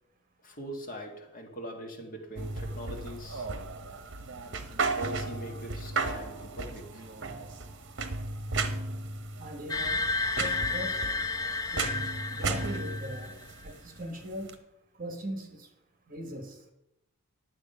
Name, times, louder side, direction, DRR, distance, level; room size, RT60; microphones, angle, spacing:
voice 1, 0.4-3.5 4.9-7.1, right 1 dB, 40° left, 2 dB, 1.9 m, -42 dB
sound 1, 2.4-14.5, right 3 dB, 55° right, 1.1 m, -35 dB
voice 2, 9.4-10.0 10.3-11.0 11.7-13.3 13.6-14.6 15.0-15.7 16.1-16.6, equal, 40° right, 5 dB, 1.5 m, -40 dB
sound 2, 9.7-13.5, left 3 dB, 15° left, 0.3 m, -32 dB
11.0 x 7.5 x 5.5 m, 0.85 s
head